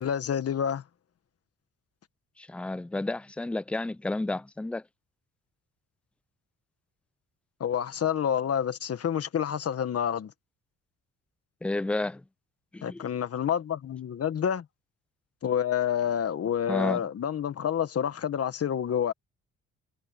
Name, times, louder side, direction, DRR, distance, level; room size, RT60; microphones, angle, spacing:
voice 1, 0.0-0.8 7.6-10.3 12.8-14.6 15.4-19.1, left 9 dB, 50° left, 1.5 m, -28 dB
voice 2, 2.4-4.8 11.6-12.2 12.7-13.1 16.7-17.1, left 2 dB, 5° left, 0.3 m, -31 dB
cardioid pair, 90°, 30 cm